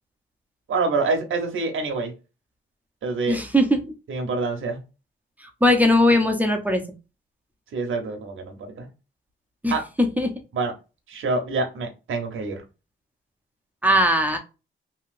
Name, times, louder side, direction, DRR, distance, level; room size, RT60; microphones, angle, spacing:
voice 1, 0.7-2.1 3.0-3.4 4.1-4.8 7.7-8.9 9.7-9.8 10.5-10.7 11.1-12.6, right 3 dB, 80° right, 3 dB, 0.9 m, -26 dB
voice 2, 3.3-3.8 5.6-6.8 9.6-9.7 10.0-10.3 13.8-14.4, left 1 dB, 10° right, 3 dB, 0.5 m, -19 dB
2.9 x 2.8 x 2.5 m, 0.29 s
wide cardioid pair, 125°, 21 cm